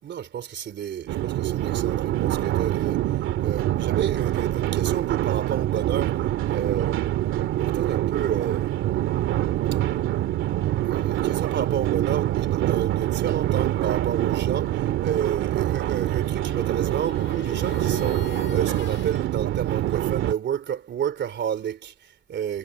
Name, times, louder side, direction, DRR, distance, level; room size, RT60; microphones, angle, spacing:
voice 1, 0.0-3.0 3.4-7.0 7.5-8.7 10.8-22.6, right 9 dB, 60° right, 3.2 m, -30 dB
sound 1, 1.1-20.3, right 13 dB, 85° right, 2.3 m, -25 dB
sound 2, 15.6-19.2, left 10 dB, 70° left, 5.4 m, -42 dB
cardioid pair, 90°, 20 cm